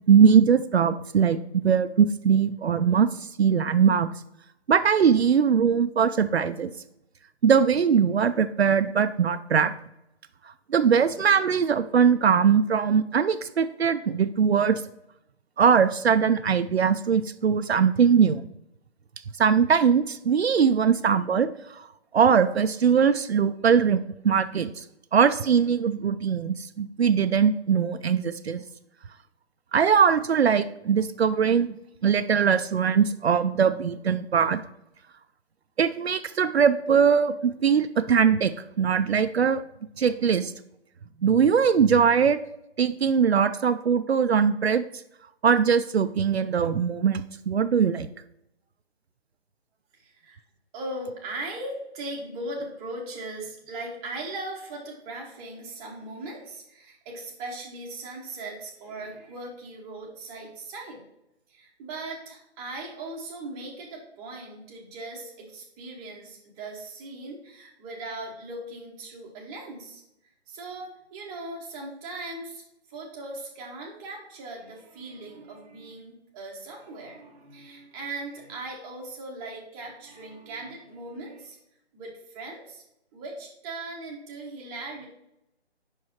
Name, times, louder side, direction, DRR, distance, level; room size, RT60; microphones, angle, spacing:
voice 1, 0.1-3.1 3.4-4.1 4.7-6.7 7.4-9.7 10.7-14.8 15.6-18.4 19.4-21.9 22.1-24.8 25.1-28.6 29.7-34.6 35.8-38.5 38.8-39.6 40.0-40.5 41.2-42.4 42.8-44.8 45.4-48.1, right 7 dB, 65° right, 10 dB, 0.5 m, -21 dB
voice 2, 49.9-50.4 50.7-61.0 61.5-70.0 70.5-72.6 72.9-81.6 81.9-82.8 83.1-85.1, right 2 dB, 10° right, -2 dB, 0.8 m, -39 dB
5.4 x 4.8 x 5.7 m, 0.83 s
figure-of-eight pair, 145°, 33 cm